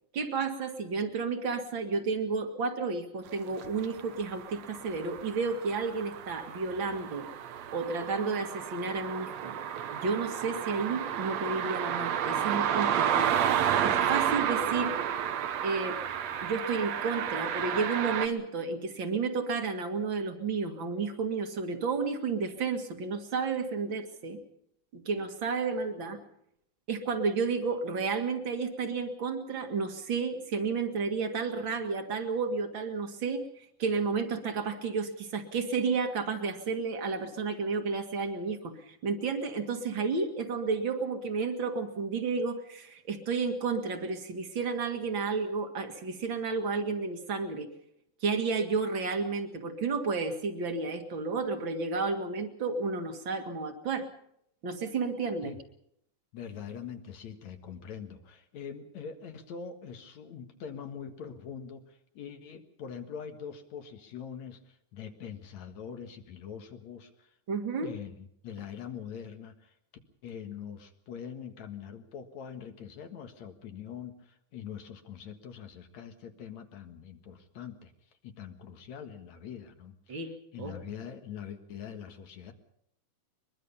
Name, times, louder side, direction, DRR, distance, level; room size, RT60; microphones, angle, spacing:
voice 1, 0.1-7.3 7.7-9.5 9.9-13.3 13.8-15.0 15.6-16.0 16.4-24.4 24.9-26.2 26.9-33.4 33.8-47.7 48.2-54.1 54.6-55.5 67.5-67.9 80.1-80.3 80.6-80.7, right 4 dB, 45° right, 6 dB, 2.3 m, -31 dB
sound 1, 3.6-18.3, right 9 dB, 65° right, 2.1 m, -31 dB
voice 2, 56.3-67.3 67.8-69.7 70.2-77.9 78.2-82.5, left 7 dB, 65° left, 6 dB, 2.8 m, -43 dB
22.5 x 22.5 x 5.6 m, 0.74 s
omnidirectional pair, 3.6 m